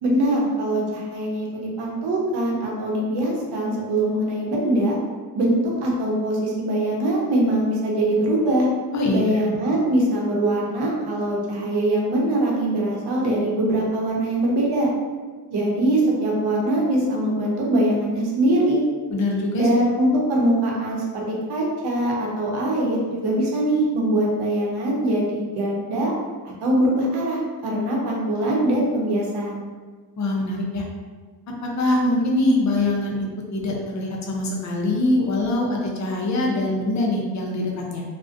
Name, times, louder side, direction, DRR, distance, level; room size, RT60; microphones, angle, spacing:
voice 1, 0.0-5.0 5.3-8.7 9.1-14.9 15.5-18.8 19.5-26.1 26.6-29.7, right 1 dB, 85° right, -2 dB, 0.7 m, -22 dB
voice 2, 19.1-19.7 30.2-30.8 31.6-38.0, left 2 dB, 45° left, -1 dB, 0.5 m, -23 dB
2.4 x 2.1 x 2.5 m, 1.4 s
wide cardioid pair, 140°, 39 cm